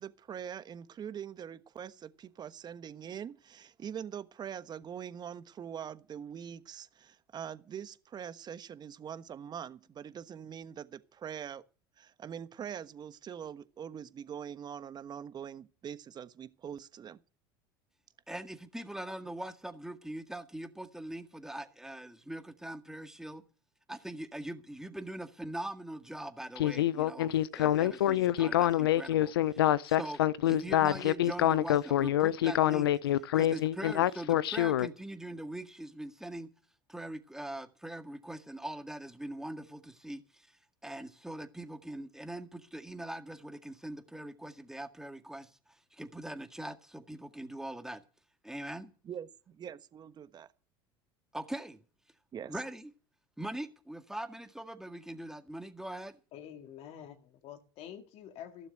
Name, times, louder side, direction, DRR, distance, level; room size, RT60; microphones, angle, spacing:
voice 1, 0.0-11.6 12.0-17.2 49.0-50.5 52.3-52.6, right 8 dB, 35° right, 1.2 m, -43 dB
voice 2, 18.3-23.4 23.9-36.5 36.9-40.6 40.8-48.0 48.4-48.9 51.3-51.8 52.5-52.9 53.4-56.2, right 1 dB, 5° right, 1.9 m, -42 dB
Speech synthesizer, 26.6-34.9, left 12 dB, 90° left, 0.6 m, -26 dB
voice 3, 56.3-58.7, left 9 dB, 55° left, 2.0 m, -47 dB
16.0 x 7.1 x 9.1 m
hypercardioid pair, 85°, 12 cm